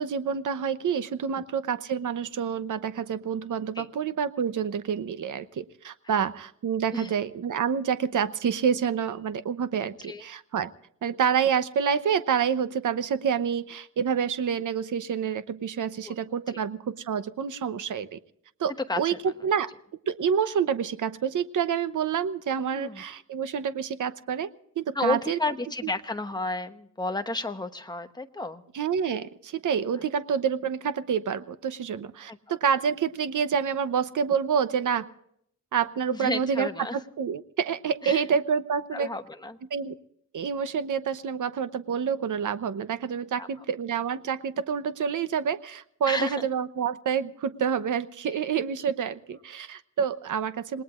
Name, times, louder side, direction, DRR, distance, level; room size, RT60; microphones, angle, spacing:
voice 1, 0.0-10.7 11.0-18.2 18.6-19.1 19.4-19.7 20.1-24.5 24.8-25.4 28.7-35.1 35.7-39.1 39.7-40.0 40.3-50.8, right 7 dB, 65° right, 13 dB, 0.9 m, -28 dB
voice 2, 18.9-19.2 22.7-23.0 24.9-28.6 32.3-32.4 36.1-37.0 38.0-38.2 38.9-39.6 43.4-43.6 46.1-46.5, left 2 dB, 10° left, 7 dB, 1.0 m, -32 dB
27.5 x 19.5 x 2.5 m, 0.70 s
wide cardioid pair, 160°, 33 cm